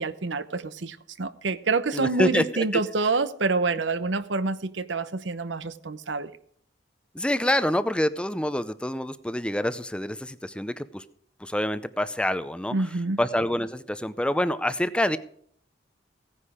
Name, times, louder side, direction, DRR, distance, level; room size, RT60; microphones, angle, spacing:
voice 1, 0.0-6.3 12.7-13.2, right 3 dB, 80° right, 0.9 m, -27 dB
voice 2, 1.9-2.6 7.1-11.0 11.4-12.7 13.2-15.2, left 1 dB, 5° left, 0.5 m, -26 dB
16.5 x 9.9 x 4.9 m
head